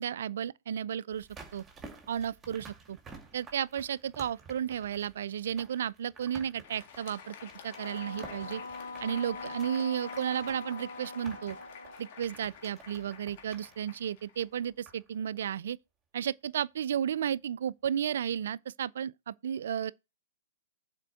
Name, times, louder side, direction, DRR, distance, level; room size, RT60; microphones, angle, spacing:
voice 1, 0.0-1.6 2.1-3.0 3.3-8.6 9.0-11.6 12.0-15.8 16.1-19.9, right 9 dB, 60° right, 0.4 m, -33 dB
sound 1, 1.1-15.1 15.4-15.5, right 4 dB, 15° right, 2.1 m, -52 dB
Crowd, 6.6-14.9, left 8 dB, 50° left, 1.7 m, -50 dB
Wind instrument woodwind instrument, 7.7-12.2, left 3 dB, 75° left, 1.3 m, -43 dB
7.4 x 4.4 x 6.7 m
figure-of-eight pair, 115°, 0 cm